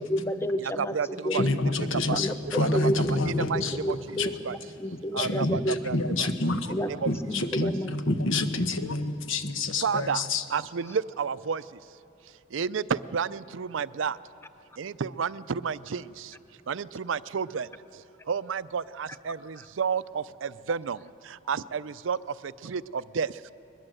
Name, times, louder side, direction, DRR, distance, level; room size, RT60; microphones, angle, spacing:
voice 1, 0.0-1.5 2.1-5.8 6.7-6.9 7.3-7.9 8.3-8.4, equal, 15° left, 10 dB, 0.7 m, -31 dB
voice 2, 1.3-3.8 4.2-4.3 5.2-5.6 5.9-6.7 7.1-10.4, left 2 dB, 85° left, 8 dB, 1.3 m, -28 dB
voice 3, 5.1-6.3 7.0-7.1 7.6-7.7 9.8-10.2 10.5-11.6 12.5-14.2 14.8-16.0 16.7-17.7 18.3-21.0 21.5-22.2 22.6-23.3, right 6 dB, 75° right, 16 dB, 0.5 m, -30 dB
21.0 x 20.5 x 7.8 m, 3.0 s
head